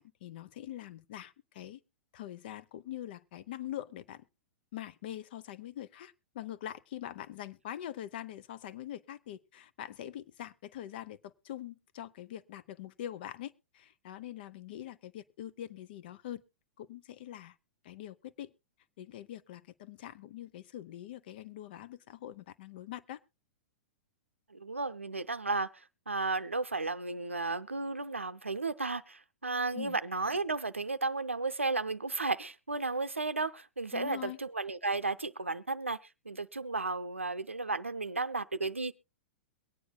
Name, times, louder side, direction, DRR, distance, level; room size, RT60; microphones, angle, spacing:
voice 1, 0.0-1.8 2.1-4.2 4.7-16.4 16.8-17.6 17.8-18.5 19.0-23.2 29.7-30.0 33.9-34.4, left 12 dB, 50° left, 0.7 m, -43 dB
voice 2, 24.5-36.0 36.3-38.9, right 3 dB, 85° right, 0.5 m, -34 dB
22.5 x 9.4 x 2.2 m
figure-of-eight pair, 105°, 7 cm